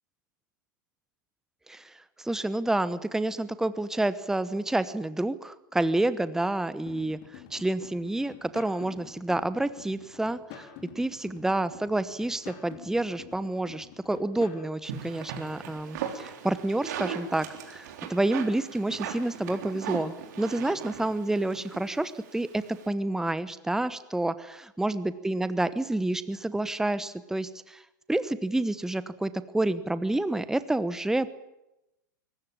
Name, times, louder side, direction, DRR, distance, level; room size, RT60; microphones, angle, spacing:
voice 1, 2.2-10.7 11.0-27.8 28.1-31.3, right 2 dB, 5° right, 14 dB, 1.1 m, -29 dB
sound 1, 6.9-14.7, left 9 dB, 50° left, 4.1 m, -48 dB
sound 2, 14.8-22.9, right 8 dB, 60° right, 3.7 m, -39 dB
22.5 x 19.5 x 9.0 m, 0.91 s
figure-of-eight pair, 90°, 11 cm